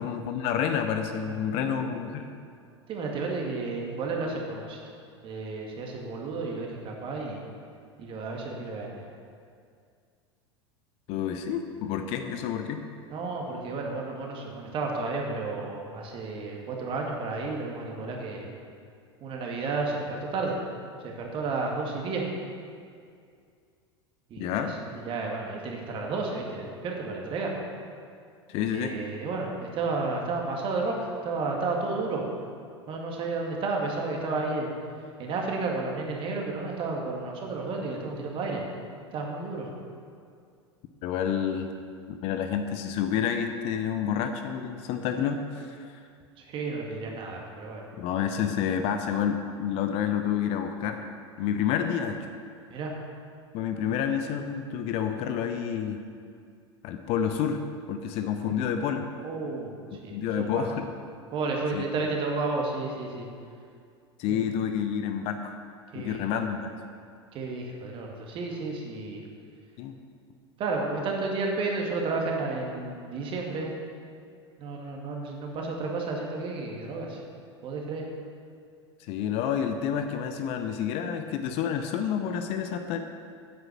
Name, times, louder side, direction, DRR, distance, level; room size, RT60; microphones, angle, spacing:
voice 1, 0.0-2.3 11.1-12.9 24.4-24.7 28.5-29.0 41.0-41.7 42.1-46.0 48.0-51.0 51.4-52.3 53.5-56.0 56.8-57.6 57.9-59.0 60.1-60.9 61.7-61.9 64.2-65.6 65.9-66.7 69.8-70.0 79.0-83.0, left 8 dB, 45° left, 7 dB, 0.7 m, -29 dB
voice 2, 1.3-1.9 2.9-4.8 5.2-7.4 8.0-9.1 13.1-18.5 19.2-20.6 21.0-22.2 24.3-27.5 28.7-32.3 32.9-34.7 35.2-38.6 39.1-39.7 46.4-47.8 52.7-52.9 58.4-58.6 59.2-59.7 60.0-60.7 61.3-63.3 64.3-64.4 65.9-66.4 67.3-69.2 70.6-73.7 74.6-77.2 77.6-78.0, right 3 dB, 35° right, 0 dB, 2.0 m, -32 dB
9.5 x 8.0 x 6.0 m, 2.3 s
figure-of-eight pair, 80°, 15 cm